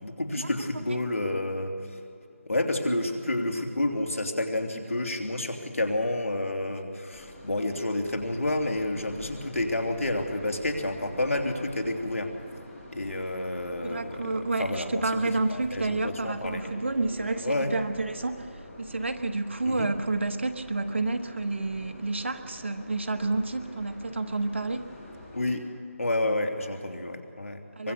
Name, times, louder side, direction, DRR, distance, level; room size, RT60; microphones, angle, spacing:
voice 1, 0.0-1.7 2.5-12.3 12.9-14.3 14.6-15.0 15.5-16.7 17.4-17.7 19.6-19.9 25.3-25.6 26.0-27.6 27.8-27.9, left 1 dB, 70° left, 4 dB, 3.0 m, -29 dB
sound 1, 7.1-25.5, left 1 dB, 10° left, 3.4 m, -46 dB
voice 2, 13.8-18.5 18.8-24.8 27.8-27.9, right 3 dB, 55° right, 8 dB, 1.4 m, -29 dB
24.0 x 21.5 x 6.7 m, 2.4 s
figure-of-eight pair, 170°, 8 cm